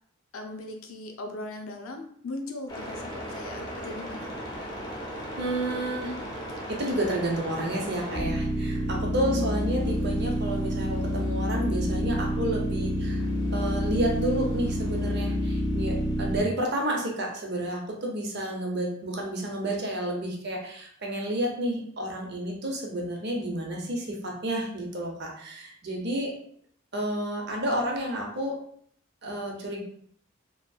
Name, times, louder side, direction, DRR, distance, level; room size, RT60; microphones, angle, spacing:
voice 1, 0.3-4.3 9.2-9.5, left 2 dB, 80° left, 4 dB, 0.5 m, -38 dB
sound 1, 2.7-16.4, equal, 20° left, 0.6 m, -30 dB
voice 2, 5.4-6.2 6.7-13.2 13.5-26.3 26.9-28.6 29.2-29.8, right 1 dB, 50° right, 0 dB, 0.6 m, -30 dB
2.9 x 2.6 x 2.3 m, 0.62 s
head